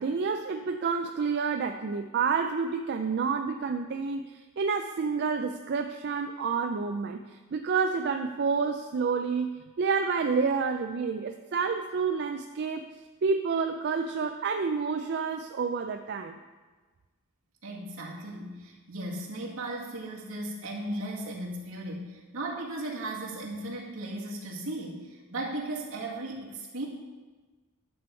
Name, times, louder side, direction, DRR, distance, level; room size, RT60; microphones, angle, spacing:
voice 1, 0.0-7.2 7.5-12.9 13.2-16.4, right 5 dB, 50° right, 6 dB, 0.4 m, -29 dB
voice 2, 17.6-26.9, right 1 dB, 70° right, -3 dB, 2.1 m, -36 dB
11.0 x 6.9 x 4.5 m, 1.3 s
head